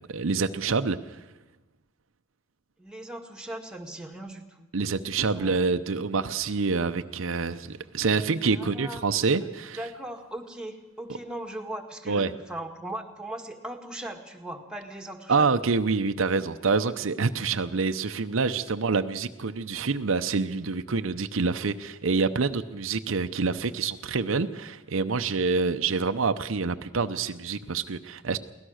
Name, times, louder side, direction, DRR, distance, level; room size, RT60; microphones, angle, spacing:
voice 1, 0.1-1.2 4.7-9.8 12.1-12.3 15.3-28.4, right 4 dB, 80° right, 8 dB, 0.8 m, -27 dB
voice 2, 2.8-4.7 5.3-5.7 8.5-9.0 9.8-15.5, right 1 dB, 5° right, 4 dB, 1.8 m, -39 dB
23.0 x 17.5 x 6.4 m, 1.0 s
head